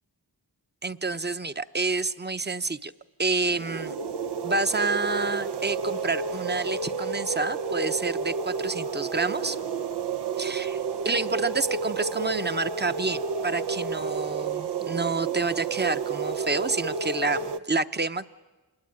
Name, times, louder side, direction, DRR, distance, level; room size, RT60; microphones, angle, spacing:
voice 1, 0.8-2.9 3.2-3.9 4.4-9.6 10.4-10.8 11.0-18.3, right 3 dB, 25° right, 11 dB, 0.9 m, -28 dB
sound 1, 3.4-17.6, right 5 dB, 80° right, 0.8 m, -31 dB
26.5 x 21.0 x 8.8 m, 1.2 s
cardioid pair, 55°, 40 cm